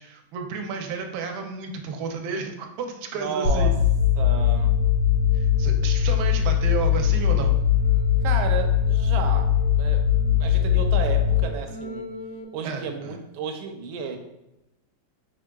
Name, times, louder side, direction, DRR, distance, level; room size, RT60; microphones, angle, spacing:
voice 1, 0.0-3.7 5.3-7.5 12.6-13.2, right 5 dB, 70° right, 3 dB, 1.0 m, -32 dB
voice 2, 3.1-3.8 4.2-4.7 8.2-9.5 9.8-10.1 10.4-12.1 12.5-14.2, right 6 dB, 85° right, 5 dB, 1.4 m, -32 dB
sound 1, 3.4-12.4, left 8 dB, 75° left, 1.2 m, -21 dB
5.0 x 3.7 x 2.2 m, 0.91 s
omnidirectional pair, 2.2 m